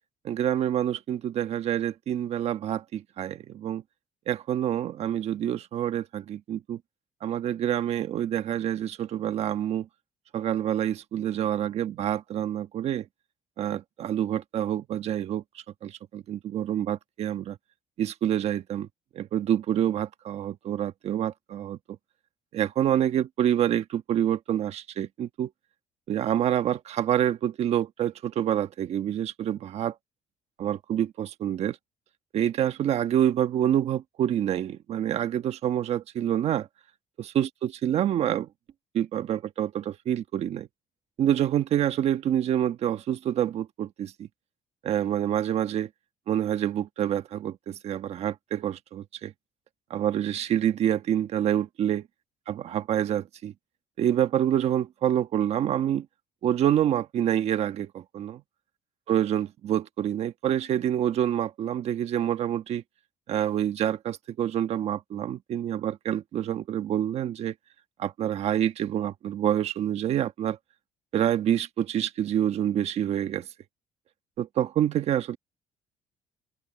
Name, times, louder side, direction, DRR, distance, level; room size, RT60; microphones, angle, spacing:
voice 1, 0.2-3.8 4.3-6.8 7.2-9.9 10.3-13.1 13.6-17.6 18.0-18.9 19.1-21.8 22.5-25.5 26.1-29.9 30.6-31.8 32.3-36.7 37.2-38.5 38.9-40.7 41.2-44.3 44.8-45.9 46.3-49.3 49.9-52.1 52.5-53.5 54.0-56.1 56.4-58.4 59.1-62.8 63.3-67.5 68.0-70.6 71.1-73.5 74.4-75.4, right 10 dB, 55° right, 1.3 m, -27 dB
cardioid pair, 130°, 13 cm